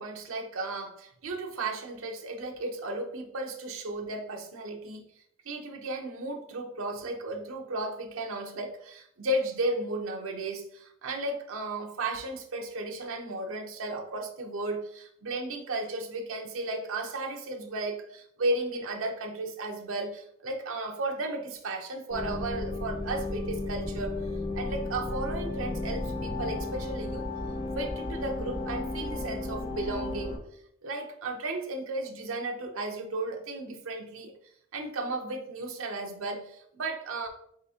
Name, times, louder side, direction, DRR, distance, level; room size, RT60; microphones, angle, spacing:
voice 1, 0.0-5.0 5.4-24.1 24.5-27.2 27.8-30.3 30.8-34.3 34.7-37.3, right 2 dB, 80° right, 3 dB, 0.7 m, -34 dB
sound 1, 22.1-30.4, left 2 dB, 25° left, 1.1 m, -34 dB
4.1 x 3.7 x 2.8 m, 0.70 s
head